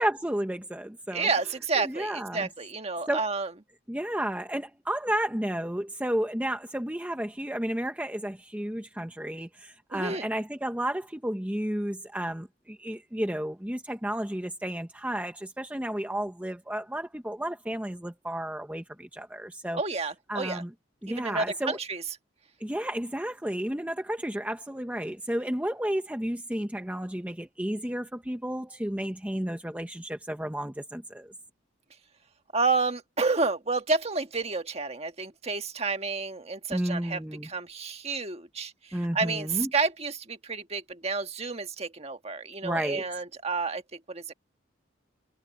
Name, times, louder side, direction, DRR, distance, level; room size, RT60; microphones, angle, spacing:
voice 1, 0.0-1.3 1.8-2.5 3.1-3.2 3.9-19.8 20.3-20.7 21.0-21.8 22.6-31.3 36.7-37.5 38.9-39.7 42.6-43.1, right 1 dB, 10° right, 0.8 m, -32 dB
voice 2, 1.1-3.5 9.9-10.3 19.7-20.6 21.1-22.0 32.5-44.3, right 4 dB, 30° right, 1.5 m, -30 dB
head